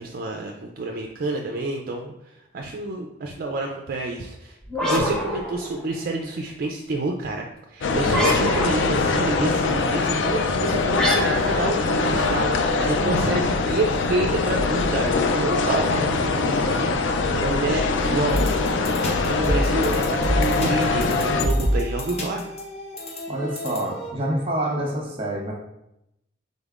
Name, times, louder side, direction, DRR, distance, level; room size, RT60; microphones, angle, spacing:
voice 1, 0.0-22.4, right 2 dB, 50° right, 2 dB, 0.4 m, -29 dB
sound 1, 4.6-6.2 8.1-9.1 10.9-12.8, equal, 5° left, 0.7 m, -27 dB
sound 2, 7.8-21.5, left 3 dB, 70° left, 0.4 m, -23 dB
sound 3, 18.3-24.1, equal, 35° left, 0.9 m, -27 dB
voice 2, 23.3-25.5, right 1 dB, 30° right, -1 dB, 1.1 m, -27 dB
5.2 x 3.9 x 2.4 m, 0.85 s
head